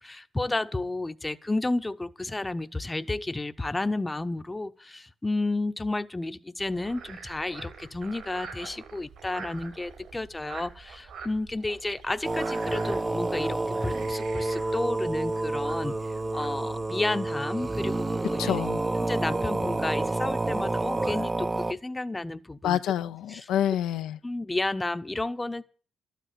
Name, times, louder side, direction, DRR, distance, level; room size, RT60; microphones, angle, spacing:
voice 1, 0.0-15.9 16.3-18.6 19.1-22.8 23.3-23.4 24.2-25.6, left 2 dB, 15° left, 0.8 m, -31 dB
Frog, 6.6-16.9, right 5 dB, 75° right, 4.5 m, -46 dB
sound 1, 12.2-21.7, right 2 dB, 20° right, 0.6 m, -29 dB
voice 2, 18.4-18.9 22.6-24.2, left 11 dB, 85° left, 0.6 m, -27 dB
12.5 x 9.3 x 7.9 m
cardioid pair, 90°, 0 cm